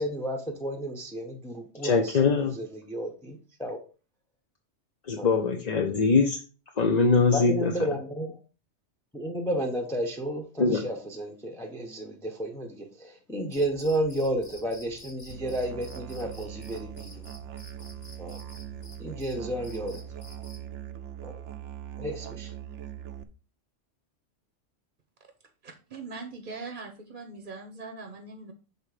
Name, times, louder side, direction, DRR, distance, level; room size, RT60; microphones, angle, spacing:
voice 1, 0.0-2.2 2.6-3.8 5.2-5.3 7.3-8.4 9.1-17.2 18.2-18.4 19.0-20.0 21.2-21.4 22.0-22.5, right 1 dB, 5° left, 3 dB, 0.7 m, -32 dB
voice 2, 1.8-2.6 5.1-6.4 6.8-7.7 10.6-10.8, left 4 dB, 40° left, 3 dB, 0.7 m, -22 dB
Cricket, 13.5-20.7, left 2 dB, 70° left, 2.0 m, -51 dB
Musical instrument, 15.3-23.2, right 11 dB, 75° right, 0.9 m, -41 dB
voice 3, 25.6-28.5, right 4 dB, 45° right, 4 dB, 0.9 m, -41 dB
6.7 x 3.7 x 4.9 m, 0.35 s
omnidirectional pair, 1.3 m